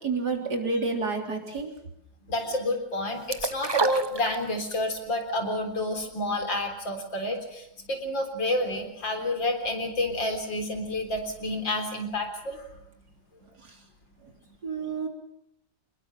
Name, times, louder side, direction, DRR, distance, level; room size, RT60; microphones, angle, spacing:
voice 1, 0.0-1.7 14.6-15.1, right 3 dB, 60° right, 3 dB, 4.1 m, -29 dB
voice 2, 2.2-12.7, left 1 dB, 80° left, 6 dB, 4.5 m, -29 dB
sound 1, 3.3-4.8 5.2-5.3, right 4 dB, 35° right, 0.4 m, -28 dB
26.5 x 21.0 x 7.6 m, 0.80 s
omnidirectional pair, 2.0 m